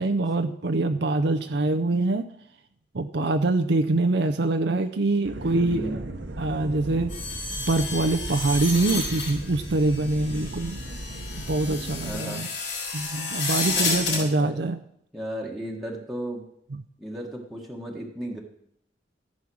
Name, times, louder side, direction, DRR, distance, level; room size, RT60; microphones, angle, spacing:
voice 1, 0.0-2.2 2.9-6.1 6.4-7.1 7.6-10.8 11.4-12.5 12.9-14.8, right 2 dB, 65° right, 7 dB, 0.7 m, -24 dB
sound 1, 5.2-12.2, right 1 dB, 85° right, 1.2 m, -37 dB
voice 2, 5.6-6.0 11.9-12.5 13.7-14.7 15.1-16.4 17.0-18.4, equal, ahead, -3 dB, 1.6 m, -35 dB
sound 2, 7.1-14.2, left 3 dB, 70° left, 3.8 m, -31 dB
14.0 x 7.5 x 6.3 m, 0.73 s
head